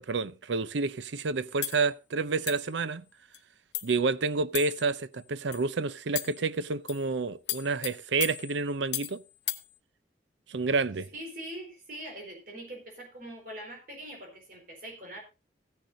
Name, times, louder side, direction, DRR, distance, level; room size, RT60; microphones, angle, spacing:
voice 1, 0.0-3.0 3.8-9.2 10.5-11.1, right 4 dB, 80° right, 0.6 m, -29 dB
sound 1, 1.6-1.8 2.5-2.7 3.3-3.4 3.7-4.0 4.5-4.9 5.5-5.7 6.1-6.4 6.9-7.1 7.5-9.2 9.5-9.7, left 14 dB, 75° left, 1.1 m, -35 dB
voice 2, 11.1-15.2, right 1 dB, 50° right, 4.6 m, -43 dB
15.5 x 10.5 x 2.7 m
head